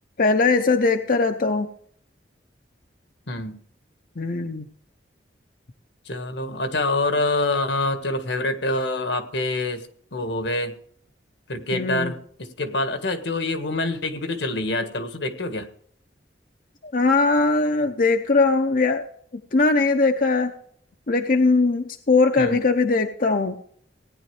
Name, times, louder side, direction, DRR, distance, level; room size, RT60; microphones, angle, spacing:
voice 1, 0.2-1.7 4.2-4.7 11.7-12.1 16.8-19.0 19.5-20.5 21.1-23.6, left 3 dB, 50° left, 6 dB, 0.7 m, -20 dB
voice 2, 3.3-3.6 6.0-10.7 11.5-15.7 22.4-22.6, left 2 dB, 80° left, 8 dB, 1.5 m, -26 dB
17.5 x 10.0 x 3.2 m, 0.62 s
head